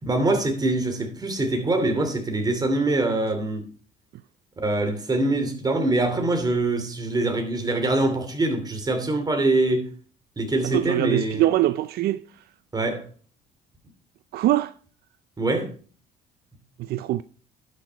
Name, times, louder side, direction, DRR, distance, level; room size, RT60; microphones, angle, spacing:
voice 1, 0.0-3.7 4.6-9.9 10.4-11.4 12.7-13.0 15.4-15.7, right 2 dB, 25° right, 2.8 m, -24 dB
voice 2, 10.6-12.2 14.3-14.7 16.8-17.2, right 15 dB, 70° right, 0.5 m, -23 dB
11.5 x 6.6 x 4.5 m
cardioid pair, 100°, 17 cm